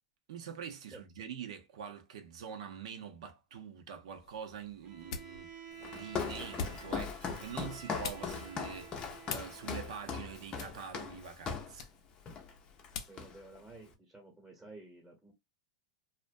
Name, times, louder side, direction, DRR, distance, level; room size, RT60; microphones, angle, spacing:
voice 1, 0.3-5.5 5.9-11.9, right 7 dB, 75° right, 0.6 m, -45 dB
Ball Catching, 4.1-13.3, left 5 dB, 70° left, 0.6 m, -48 dB
Bowed string instrument, 4.8-10.4, right 6 dB, 30° right, 0.5 m, -51 dB
Walk footsteps, 5.8-11.8 12.3-12.5 12.8-13.6, left 6 dB, 25° left, 0.6 m, -40 dB
voice 2, 13.1-15.3, right 2 dB, 5° right, 0.9 m, -52 dB
2.5 x 2.1 x 2.5 m
supercardioid pair, 130°, 3 cm